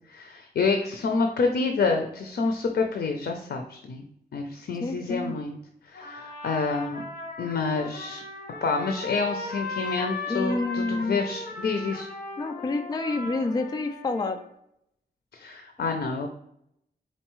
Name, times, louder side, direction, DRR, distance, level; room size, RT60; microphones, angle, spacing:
voice 1, 0.1-4.0 4.3-5.6 5.9-7.0 7.4-8.2 8.6-12.1 15.3-16.3, left 4 dB, 85° left, 4 dB, 0.6 m, -28 dB
voice 2, 4.8-5.3 10.3-11.2 12.4-14.4, left 3 dB, 25° left, 6 dB, 0.3 m, -28 dB
Trumpet, 5.9-14.4, left 2 dB, 60° left, 1.6 m, -37 dB
4.4 x 3.9 x 3.0 m, 0.75 s
wide cardioid pair, 145°, 17 cm